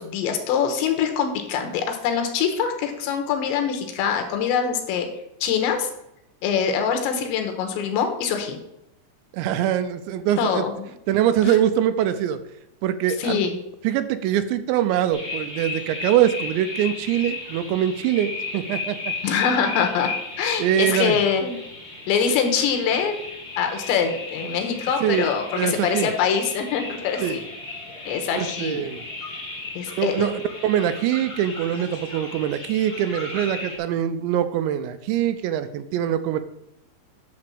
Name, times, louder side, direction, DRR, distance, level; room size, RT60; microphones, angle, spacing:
voice 1, 0.0-5.1 5.4-5.9 6.4-8.6 10.4-10.7 11.4-11.6 13.2-13.6 19.2-20.1 20.4-21.6 22.1-23.2 23.6-27.4 28.1-28.8 29.7-30.3, left 7 dB, 80° left, 5 dB, 3.3 m, -24 dB
voice 2, 9.3-10.7 11.1-12.4 12.8-13.4 13.8-19.1 20.6-21.2 25.0-25.3 25.6-26.1 27.2-27.4 28.4-29.0 30.0-36.4, right 10 dB, 85° right, 11 dB, 2.8 m, -23 dB
sound 1, 15.1-33.8, left 3 dB, 30° left, 1.2 m, -35 dB
9.7 x 3.9 x 7.0 m, 0.84 s
omnidirectional pair, 5.3 m